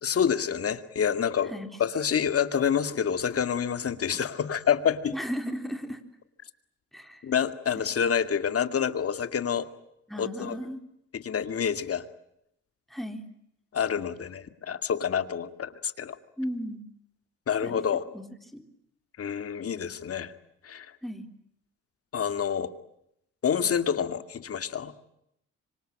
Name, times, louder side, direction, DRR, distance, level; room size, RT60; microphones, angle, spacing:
voice 1, 0.0-1.5 1.8-5.2 7.2-9.7 10.2-10.6 11.1-12.0 13.7-16.2 17.5-18.0 19.2-20.3 20.6-20.9 22.1-22.7 23.4-24.9, left 7 dB, 50° left, 9 dB, 2.3 m, -27 dB
voice 2, 5.1-6.0 6.9-7.2 10.1-10.8 12.9-13.2 16.4-16.9 17.6-17.8 18.1-18.2 18.5-18.6 21.0-21.2, equal, ahead, 5 dB, 3.8 m, -35 dB
25.5 x 25.0 x 9.0 m, 0.79 s
cardioid pair, 90°, 30 cm